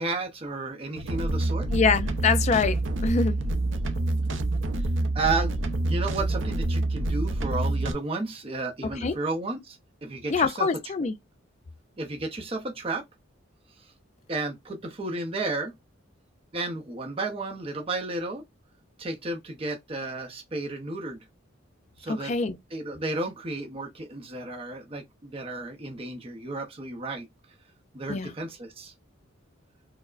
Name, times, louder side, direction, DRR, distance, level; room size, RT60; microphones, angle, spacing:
voice 1, 0.0-1.7 4.8-4.9 5.1-10.7 12.0-13.0 13.8-13.9 14.3-15.7 16.5-18.4 19.0-21.2 22.0-22.3 22.7-27.3 27.9-28.9, right 2 dB, 30° right, 0.5 m, -32 dB
sound 1, 0.9-7.9, right 2 dB, 75° right, 0.5 m, -27 dB
voice 2, 1.7-3.4 9.0-9.1 10.3-11.1 22.1-22.6 28.1-28.3, left 5 dB, 35° left, 0.3 m, -25 dB
4.4 x 2.0 x 2.4 m
head